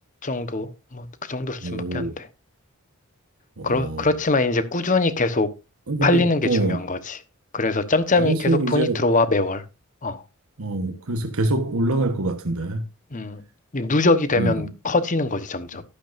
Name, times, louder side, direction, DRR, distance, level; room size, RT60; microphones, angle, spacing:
voice 1, 0.2-2.2 3.6-5.5 6.0-7.2 7.5-9.6 10.0-10.2 13.1-13.4 13.7-15.8, left 2 dB, 35° left, 1.1 m, -23 dB
voice 2, 1.6-2.2 3.6-4.1 5.9-6.8 8.2-9.1 10.6-12.8 14.4-14.6, right 2 dB, 80° right, 1.2 m, -25 dB
12.0 x 11.5 x 2.6 m
head